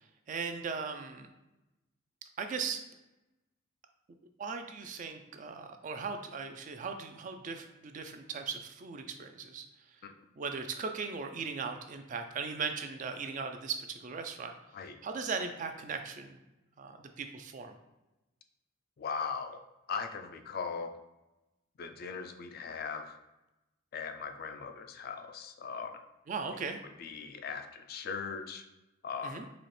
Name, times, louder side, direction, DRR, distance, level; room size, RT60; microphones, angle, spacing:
voice 1, 0.3-1.3 2.4-2.8 4.4-9.7 10.4-14.5 15.0-16.4 16.8-17.8 26.3-26.8 29.2-29.5, right 5 dB, 40° right, 6 dB, 0.3 m, -38 dB
voice 2, 19.0-19.6 19.9-20.9 21.8-23.2 23.9-26.0 27.0-28.6 29.0-29.5, left 5 dB, 45° left, 6 dB, 0.3 m, -39 dB
4.1 x 2.8 x 3.1 m, 0.99 s
head